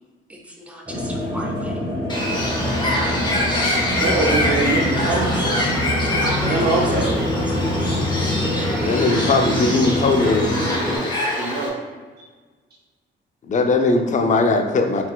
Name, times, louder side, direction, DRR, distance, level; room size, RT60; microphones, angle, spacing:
voice 1, 0.7-1.7 3.7-3.9 4.7-4.9 5.7-5.9 6.2-6.5 8.3-8.9 10.9-11.5, right 1 dB, 5° right, -1 dB, 0.7 m, -35 dB
sound 1, 0.9-11.0, equal, 20° right, 1.3 m, -24 dB
Bird, 2.1-11.7, left 1 dB, 20° left, 0.9 m, -25 dB
voice 2, 4.0-5.7 6.4-7.1 11.3-11.7, right 2 dB, 55° right, -4 dB, 0.7 m, -23 dB
voice 3, 8.8-10.6 13.5-15.1, left 3 dB, 40° left, 5 dB, 0.5 m, -19 dB
4.1 x 3.9 x 2.3 m, 1.4 s
cardioid pair, 90°, 20 cm